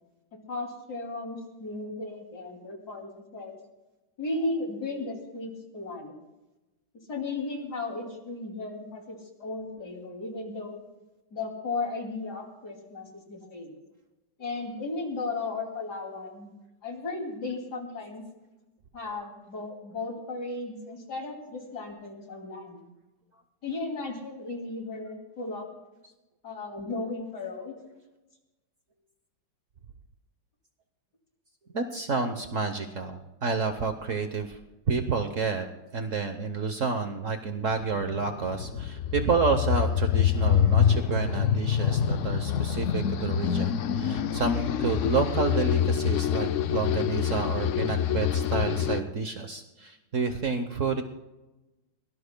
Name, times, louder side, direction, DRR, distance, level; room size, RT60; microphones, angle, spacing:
voice 1, 0.5-3.6 4.2-6.1 7.1-10.8 11.3-13.8 14.4-16.5 16.8-18.2 18.9-22.8 23.6-25.7 26.4-27.7 31.6-31.7, left 3 dB, 60° left, 2 dB, 3.2 m, -35 dB
voice 2, 31.7-34.6 34.9-35.7 35.9-51.0, right 4 dB, 50° right, 6 dB, 1.1 m, -29 dB
sound 1, 37.8-49.0, left 8 dB, 90° left, 0.6 m, -26 dB
23.5 x 18.5 x 2.2 m, 1.0 s
omnidirectional pair, 2.0 m